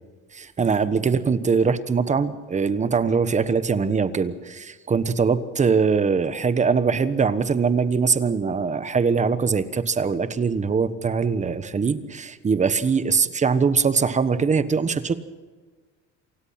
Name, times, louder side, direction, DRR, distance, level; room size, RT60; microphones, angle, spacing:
voice 1, 0.3-15.2, right 5 dB, 20° right, 13 dB, 1.2 m, -22 dB
28.0 x 17.5 x 5.8 m, 1.4 s
cardioid pair, 135°, 32 cm